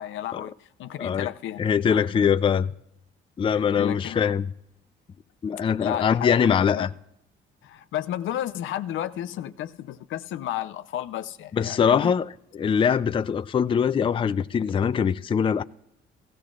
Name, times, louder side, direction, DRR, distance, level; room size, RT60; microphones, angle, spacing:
voice 1, 0.0-1.6 1.9-2.1 3.5-4.2 5.8-6.9 7.6-12.1, left 11 dB, 80° left, 0.6 m, -33 dB
voice 2, 1.0-1.3 1.6-2.7 3.4-4.5 5.4-6.9 11.5-12.2 12.5-15.6, left 7 dB, 25° left, 0.4 m, -22 dB
16.5 x 15.5 x 2.4 m
cardioid pair, 90°, 20 cm